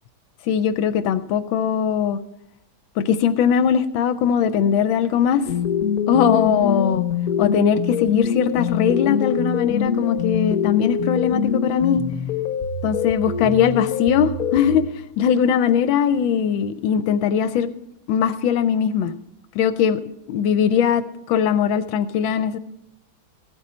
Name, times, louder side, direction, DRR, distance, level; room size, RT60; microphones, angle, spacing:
voice 1, 0.5-2.2 3.0-5.4 6.1-7.0 7.4-12.0 12.8-14.9 15.2-17.7 18.1-19.1 19.6-20.0 20.3-22.6, left 8 dB, 80° left, 12 dB, 1.3 m, -20 dB
sound 1, 5.4-14.8, left 7 dB, 50° left, 1.4 m, -24 dB
15.5 x 9.1 x 4.3 m, 0.86 s
omnidirectional pair, 2.2 m